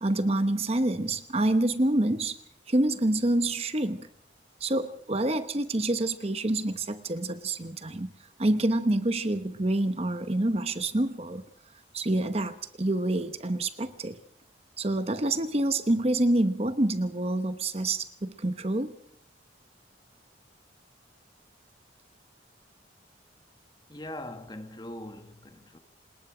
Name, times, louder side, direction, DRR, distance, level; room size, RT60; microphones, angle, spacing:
voice 1, 0.0-2.4 2.7-4.1 4.6-8.1 8.4-11.4 11.9-14.2 14.8-18.9, right 1 dB, 30° right, 1.0 m, -27 dB
voice 2, 23.9-25.8, left 1 dB, 25° left, 1.7 m, -41 dB
26.5 x 20.5 x 5.0 m
head